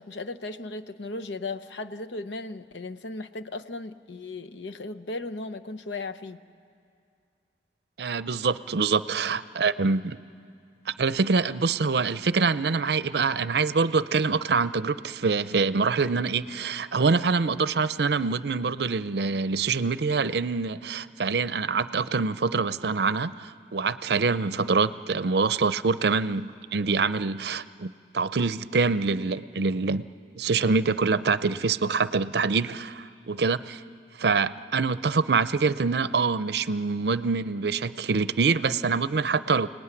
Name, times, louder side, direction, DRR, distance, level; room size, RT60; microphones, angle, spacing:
voice 1, 0.0-6.4, left 2 dB, 85° left, 9 dB, 0.9 m, -36 dB
voice 2, 8.0-10.2 10.9-30.1 30.4-33.8 34.2-39.7, right 4 dB, 65° right, 15 dB, 0.6 m, -25 dB
29.5 x 18.5 x 9.8 m, 2.4 s
head